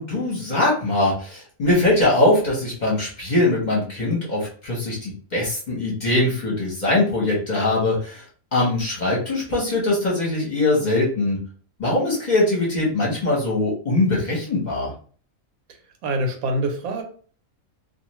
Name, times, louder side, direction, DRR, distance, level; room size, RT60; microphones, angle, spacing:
voice 1, 0.0-8.2 8.5-11.4 11.8-14.9, left 2 dB, 35° left, -4 dB, 0.9 m, -22 dB
voice 2, 16.0-17.0, right 1 dB, 85° right, 4 dB, 1.1 m, -24 dB
2.4 x 2.4 x 3.0 m, 0.43 s
omnidirectional pair, 1.5 m